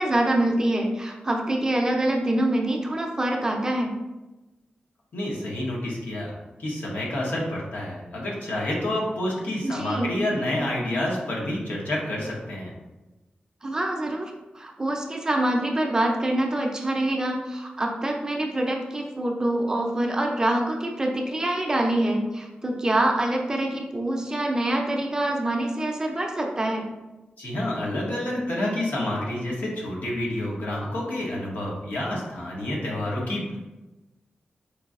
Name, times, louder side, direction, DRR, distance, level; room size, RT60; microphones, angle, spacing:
voice 1, 0.0-3.9 9.6-10.1 13.6-26.8, right 1 dB, 20° right, 1 dB, 0.4 m, -25 dB
voice 2, 5.1-6.3 6.6-12.7 27.4-33.6, left 1 dB, 80° left, -4 dB, 1.0 m, -28 dB
4.6 x 2.6 x 2.4 m, 1.1 s
wide cardioid pair, 155°, 3 cm